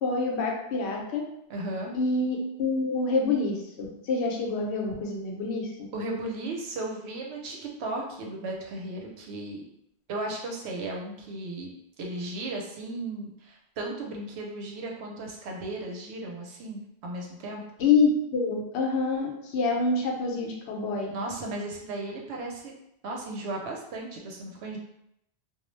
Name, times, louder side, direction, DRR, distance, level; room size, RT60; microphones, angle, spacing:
voice 1, 0.0-1.2 1.9-5.7 17.8-21.1, left 3 dB, 90° left, 0 dB, 0.9 m, -26 dB
voice 2, 1.5-1.9 5.9-9.7 10.1-11.7 12.0-17.6 21.1-22.7 23.0-24.8, right 2 dB, 90° right, 0 dB, 0.9 m, -35 dB
2.3 x 2.0 x 3.1 m, 0.78 s
omnidirectional pair, 1.1 m